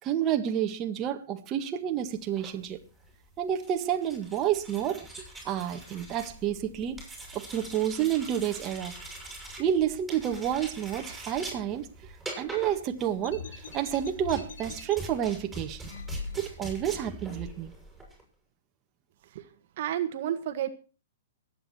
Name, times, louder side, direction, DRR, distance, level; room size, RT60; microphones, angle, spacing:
voice 1, 0.0-2.8 3.4-5.1 5.4-7.0 7.3-8.9 9.6-15.9 16.4-17.7, right 10 dB, 30° right, 1.8 m, -30 dB
sound 1, 2.2-18.2, right 1 dB, 5° right, 7.9 m, -44 dB
sound 2, 13.2-15.0 15.8-16.8, left 4 dB, 80° left, 2.5 m, -41 dB
voice 2, 19.8-20.7, right 11 dB, 55° right, 1.6 m, -30 dB
23.0 x 9.3 x 4.5 m
hypercardioid pair, 130°, 0 cm